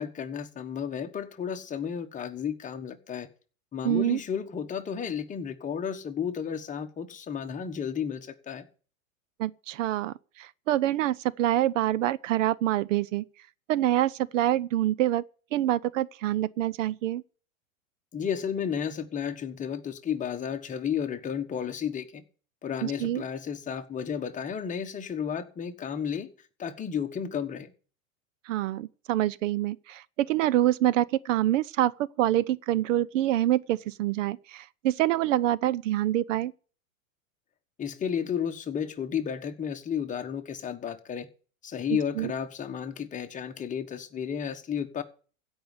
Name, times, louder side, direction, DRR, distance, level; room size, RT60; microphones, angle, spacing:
voice 1, 0.0-3.3 3.7-8.7 18.1-22.2 22.6-26.3 26.6-27.7 37.8-41.3 41.6-45.0, left 8 dB, 20° left, 1.4 m, -32 dB
voice 2, 3.8-4.2 9.4-13.2 13.7-15.2 15.5-17.2 22.8-23.2 28.5-36.5 41.9-42.3, right 13 dB, 65° right, 0.7 m, -26 dB
16.0 x 5.5 x 9.6 m
supercardioid pair, 130°, 40 cm